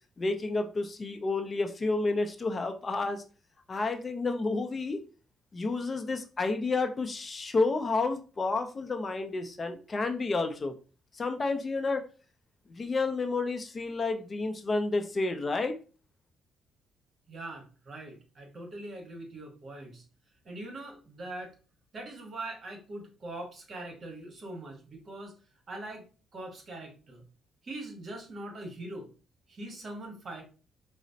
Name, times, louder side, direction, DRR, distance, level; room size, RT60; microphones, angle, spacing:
voice 1, 0.2-3.2 3.7-5.0 5.5-10.7 11.1-12.1 12.7-15.7, left 3 dB, 35° left, 6 dB, 0.5 m, -30 dB
voice 2, 17.3-20.0 20.5-21.5 21.9-25.3 25.7-26.0 26.3-27.2 27.6-29.1 29.5-30.4, right 2 dB, 45° right, 3 dB, 1.2 m, -42 dB
4.9 x 2.0 x 2.7 m, 0.36 s
cardioid pair, 90°, 0 cm